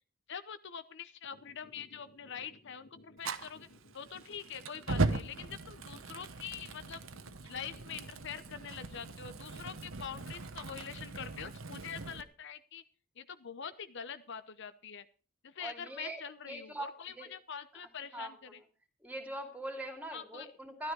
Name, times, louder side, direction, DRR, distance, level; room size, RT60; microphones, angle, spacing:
voice 1, 0.3-3.7 3.9-7.0 7.4-12.8 13.2-15.0 15.4-18.6 20.1-20.5, left 7 dB, 60° left, 13 dB, 0.8 m, -45 dB
sound 1, 1.2-11.2, left 1 dB, 85° left, 2.9 m, -59 dB
Fire, 3.2-12.2, right 3 dB, 75° right, 1.1 m, -39 dB
voice 2, 15.6-16.2 16.5-17.3 18.1-18.3 19.0-20.9, right 1 dB, 10° right, 4 dB, 2.6 m, -42 dB
13.0 x 12.5 x 4.7 m, 0.36 s
head